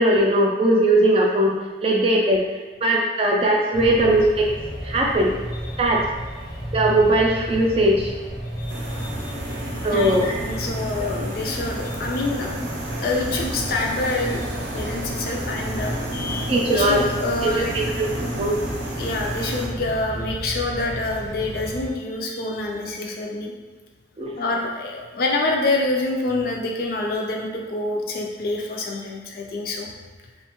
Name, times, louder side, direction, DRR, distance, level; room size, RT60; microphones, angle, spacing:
voice 1, 0.0-1.6 1.8-2.4 2.8-4.5 4.8-5.3 5.8-6.0 6.7-8.1 9.8-10.3 16.5-17.0 17.4-17.8 18.4-18.6 24.2-24.4, right 1 dB, 30° right, -1 dB, 0.3 m, -19 dB
sound 1, 3.7-21.9, equal, ahead, 0.7 m, -33 dB
sound 2, 8.7-19.7, right 1 dB, 85° right, 0.6 m, -33 dB
voice 2, 9.9-12.5 13.0-17.7 19.0-23.5 24.4-29.9, left 2 dB, 50° left, 0 dB, 0.4 m, -26 dB
2.5 x 2.3 x 2.9 m, 1.3 s
head